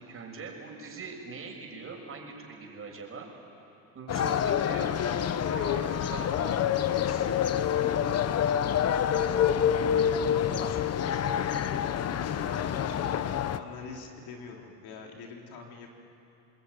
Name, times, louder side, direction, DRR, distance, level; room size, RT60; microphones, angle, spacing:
voice 1, 0.0-3.3 3.9-6.3, right 4 dB, 30° right, 0 dB, 6.2 m, -42 dB
sound 1, 4.1-13.6, left 9 dB, 40° left, 1.0 m, -27 dB
voice 2, 6.4-15.9, left 4 dB, 60° left, 1 dB, 4.1 m, -46 dB
28.5 x 20.5 x 9.6 m, 3.0 s
supercardioid pair, 110°, 41 cm